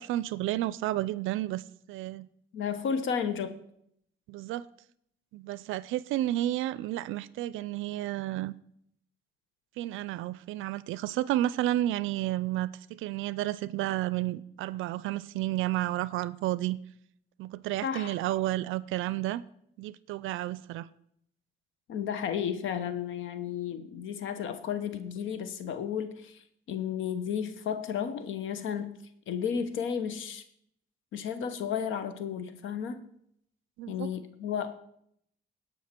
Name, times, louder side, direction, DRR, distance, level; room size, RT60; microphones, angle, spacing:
voice 1, 0.0-1.6 1.9-2.3 4.3-4.6 5.3-8.5 9.8-16.8 17.4-19.4 19.8-20.9 33.8-34.1, right 14 dB, 85° right, 0.4 m, -31 dB
voice 2, 2.5-3.6 17.8-18.2 21.9-26.4 26.7-29.0 29.3-30.4 31.1-33.1 33.9-34.7, left 7 dB, 80° left, 0.9 m, -33 dB
16.5 x 5.6 x 4.4 m
cardioid pair, 90°, 20 cm